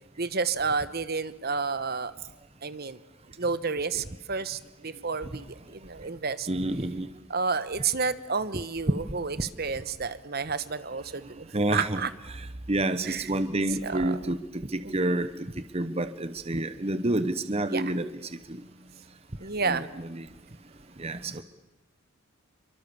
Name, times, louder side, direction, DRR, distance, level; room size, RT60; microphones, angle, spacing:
voice 1, 0.2-2.1 2.6-3.0 3.4-6.5 7.3-11.5 11.7-12.1 13.0-13.3 13.7-14.3 14.8-15.1 17.7-17.9 19.4-19.9, right 4 dB, 45° right, 14 dB, 1.1 m, -31 dB
voice 2, 6.5-7.1 11.5-11.9 12.7-18.0 18.5-18.6 19.7-19.8 21.0-21.4, right 1 dB, 30° right, 11 dB, 1.0 m, -28 dB
28.5 x 24.0 x 7.1 m, 1.0 s
head